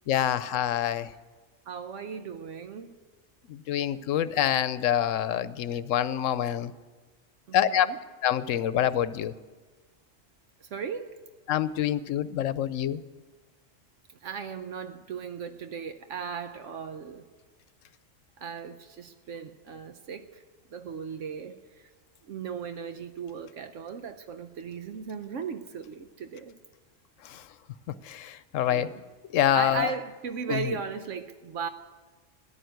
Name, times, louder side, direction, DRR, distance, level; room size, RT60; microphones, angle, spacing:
voice 1, 0.1-1.1 3.5-6.7 7.5-7.9 8.2-9.3 11.5-13.0 27.2-27.4 28.0-28.9 29.3-29.9 30.5-30.8, left 10 dB, 85° left, 1.0 m, -26 dB
voice 2, 1.7-3.0 7.5-8.0 10.6-11.2 14.2-17.2 18.4-20.4 20.7-21.6 22.3-26.6 28.7-29.0 29.5-31.7, right 6 dB, 80° right, 1.1 m, -37 dB
14.0 x 10.5 x 9.1 m
omnidirectional pair, 1.3 m